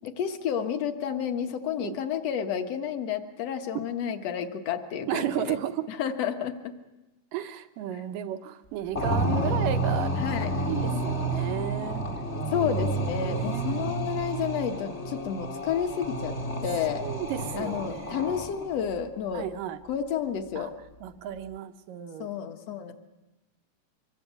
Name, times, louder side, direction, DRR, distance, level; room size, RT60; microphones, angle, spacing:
voice 1, 0.0-5.6 5.9-6.7 9.3-9.4 10.2-10.5 12.5-17.1 17.5-19.5 19.8-20.7 22.2-22.9, left 8 dB, 55° left, 7 dB, 2.3 m, -31 dB
voice 2, 5.1-5.9 7.3-10.1 10.7-12.0 13.2-13.9 17.0-18.3 19.3-19.8 20.6-20.7 21.0-22.3, right 11 dB, 85° right, 8 dB, 2.8 m, -33 dB
sound 1, 9.0-18.8, right 1 dB, 30° left, 1.3 m, -30 dB
25.0 x 21.5 x 8.2 m, 1.1 s
omnidirectional pair, 3.8 m